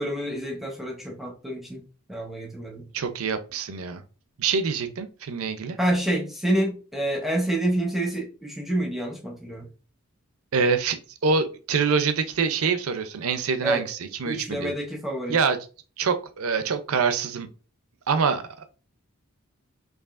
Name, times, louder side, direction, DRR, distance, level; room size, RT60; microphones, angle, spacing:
voice 1, 0.0-2.9 5.8-9.7 13.6-13.8 14.2-15.4, right 1 dB, ahead, 1 dB, 0.7 m, -28 dB
voice 2, 2.9-4.0 4.4-5.8 10.5-11.0 11.2-14.7 15.3-15.6 16.0-17.5 18.1-18.4, right 5 dB, 75° right, 10 dB, 0.5 m, -25 dB
4.7 x 2.9 x 2.4 m, 0.36 s
head